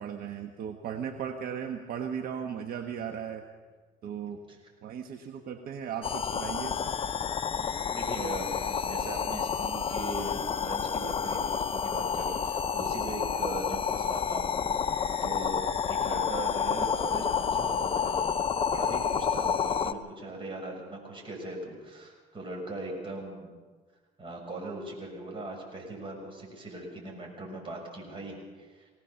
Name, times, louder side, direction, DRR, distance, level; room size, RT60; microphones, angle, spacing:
voice 1, 0.0-3.4 4.0-4.4 4.8-6.8, right 8 dB, 60° right, 5 dB, 1.3 m, -36 dB
sound 1, 6.0-19.9, left 7 dB, 35° left, 0.7 m, -30 dB
voice 2, 7.9-14.7 15.2-18.3 18.7-23.5 24.2-28.9, right 1 dB, 30° right, 0 dB, 6.7 m, -39 dB
21.0 x 18.0 x 7.0 m, 1.4 s
cardioid pair, 110°, 17 cm